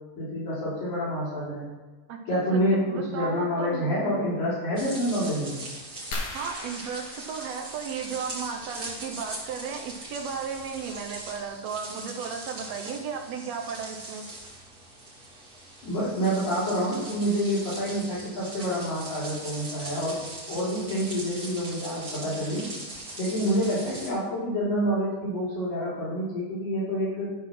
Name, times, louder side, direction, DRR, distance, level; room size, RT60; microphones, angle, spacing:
voice 1, 0.2-1.7 2.3-5.5 15.8-20.2 20.5-22.7 23.2-27.3, equal, 75° left, -9 dB, 5.1 m, -27 dB
voice 2, 2.1-3.9 6.3-14.3, right 6 dB, 70° right, 3 dB, 1.7 m, -35 dB
sound 1, 4.8-24.1, right 1 dB, 30° right, 2.6 m, -41 dB
sound 2, 6.1-8.5 10.1-10.3 10.9-11.0 11.2-11.5, left 2 dB, 55° left, 1.7 m, -39 dB
12.5 x 4.4 x 6.0 m, 1.2 s
omnidirectional pair, 3.9 m